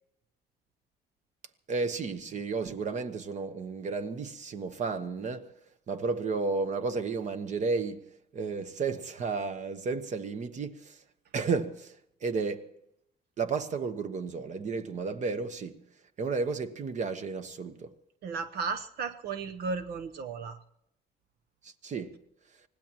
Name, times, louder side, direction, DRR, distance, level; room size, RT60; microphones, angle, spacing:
voice 1, 1.7-5.5 5.9-8.0 8.3-11.0 11.3-11.9 12.2-12.7 13.4-15.8 16.2-17.9 21.6-22.2, right 4 dB, 45° right, 1.2 m, -32 dB
voice 2, 18.2-20.6, right 5 dB, 70° right, 0.9 m, -34 dB
25.5 x 19.0 x 3.0 m
cardioid pair, 140°, 17 cm